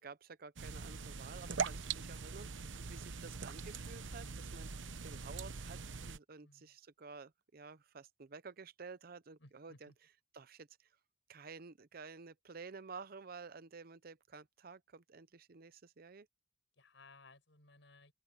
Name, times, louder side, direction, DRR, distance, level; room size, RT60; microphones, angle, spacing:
voice 1, 0.0-2.5 2.9-9.9 10.3-11.0 11.3-16.3, right 4 dB, 50° right, 0.7 m, -52 dB
sound 1, 0.6-6.2, right 5 dB, 85° right, 0.9 m, -42 dB
voice 2, 6.4-6.7 9.4-9.9 16.8-18.1, left 3 dB, 80° left, 6.3 m, -61 dB
open air
head